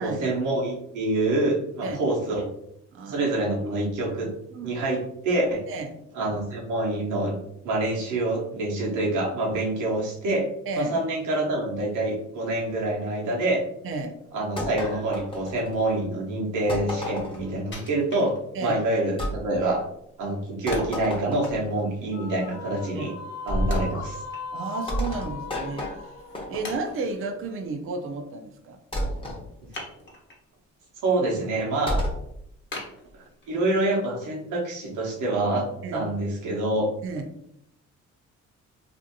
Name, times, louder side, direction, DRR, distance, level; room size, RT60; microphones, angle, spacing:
voice 1, 0.0-2.4 3.1-4.3 4.6-5.6 6.1-7.4 7.6-10.5 10.8-13.6 14.3-19.8 20.2-23.1 23.5-24.2 31.0-32.0 33.5-36.9, right 2 dB, 80° right, -2 dB, 0.8 m, -26 dB
voice 2, 2.9-3.8 4.5-4.7 5.7-6.0 10.7-10.9 13.8-14.1 18.5-18.8 22.9-23.1 24.5-28.8 35.8-36.0 37.0-37.3, right 3 dB, 45° right, 5 dB, 0.5 m, -33 dB
sound 1, 14.6-16.0 16.7-17.5 19.2-19.4 20.7-21.8 23.5-23.9 24.9-27.0 28.9-29.4 31.9-32.3, left 1 dB, 20° left, 0.7 m, -30 dB
Wood, 17.7-18.8 19.3-19.4 20.7-21.1 23.7-24.8 25.2-25.3 25.9-26.0 26.6-27.3 29.7-30.5 30.9-31.4 31.8-31.9 32.7-33.7 34.2-34.3, left 2 dB, 40° left, 1.0 m, -39 dB
sound 2, 22.1-27.5, left 4 dB, 65° left, 0.5 m, -39 dB
2.6 x 2.5 x 2.6 m, 0.76 s
cardioid pair, 90°, 30 cm